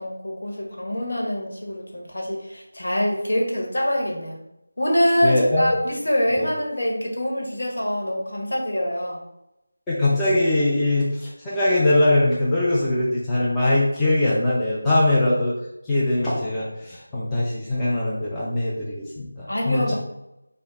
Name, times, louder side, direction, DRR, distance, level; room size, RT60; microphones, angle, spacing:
voice 1, 0.0-4.4 4.8-9.2 19.5-19.9, equal, 70° left, -1 dB, 1.1 m, -25 dB
voice 2, 5.2-5.8 6.4-6.5 9.9-15.5 15.9-19.9, left 1 dB, 10° left, -8 dB, 0.4 m, -21 dB
4.2 x 2.0 x 3.3 m, 0.87 s
figure-of-eight pair, 170°, 0 cm